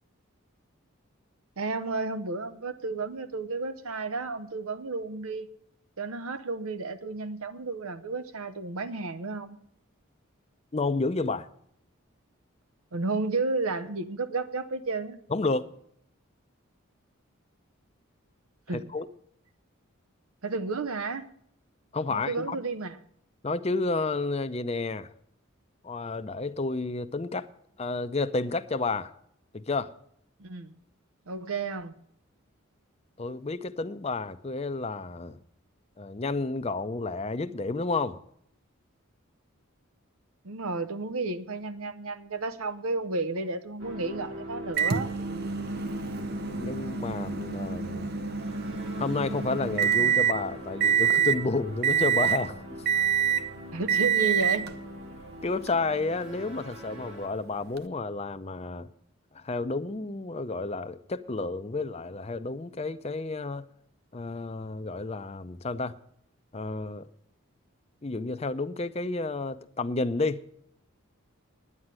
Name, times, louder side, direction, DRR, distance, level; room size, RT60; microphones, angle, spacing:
voice 1, 1.6-5.5 6.0-9.6 12.9-15.2 18.7-18.8 20.4-21.3 22.1-23.0 30.4-30.7 31.3-31.9 40.4-45.1 53.7-54.7, right 3 dB, 85° right, 0.8 m, -32 dB
voice 2, 10.7-11.5 15.3-15.7 18.7-19.1 21.9-22.6 23.4-25.1 25.8-27.5 27.8-29.1 29.5-29.9 33.2-35.4 36.0-38.2 46.6-48.2 49.0-52.6 55.4-58.9 59.3-63.6 64.1-66.0 66.5-67.1 68.0-70.4, left 3 dB, 30° left, 0.6 m, -31 dB
sound 1, 43.8-57.3, equal, 60° right, 2.9 m, -42 dB
Microwave oven, 44.8-50.4 50.8-51.4 51.8-52.5 52.9-53.5 53.9-54.7 55.7-55.8 57.8-57.9, right 8 dB, 45° right, 0.7 m, -26 dB
9.8 x 9.7 x 7.5 m
head